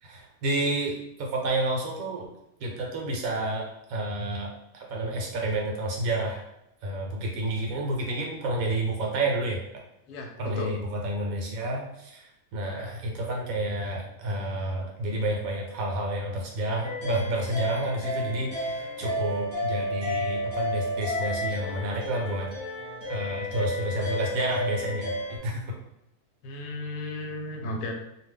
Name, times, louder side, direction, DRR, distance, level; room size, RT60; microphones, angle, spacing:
voice 1, 0.0-2.3 2.6-6.4 6.8-9.6 10.4-22.5 23.1-25.6, right 1 dB, 70° right, 0 dB, 1.0 m, -30 dB
voice 2, 10.1-10.7 26.4-27.9, left 2 dB, 80° left, 3 dB, 1.1 m, -34 dB
sound 1, 16.8-25.4, left 1 dB, 25° left, 0.6 m, -32 dB
2.6 x 2.1 x 3.5 m, 0.86 s
omnidirectional pair, 1.7 m